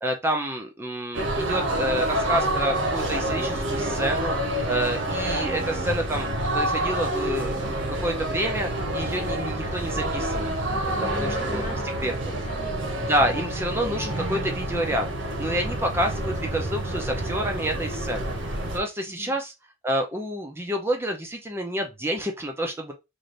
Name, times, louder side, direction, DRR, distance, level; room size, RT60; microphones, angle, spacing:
voice 1, 0.0-4.3 4.7-6.3 6.5-11.6 12.0-12.1 13.1-18.3 18.7-19.5 19.8-22.9, equal, 10° right, 0.5 m, -28 dB
sound 1, 1.1-18.8, right 1 dB, 70° right, 1.0 m, -28 dB
voice 2, 11.0-13.4 19.1-19.4, left 2 dB, 40° left, 0.9 m, -41 dB
3.2 x 2.6 x 3.9 m
head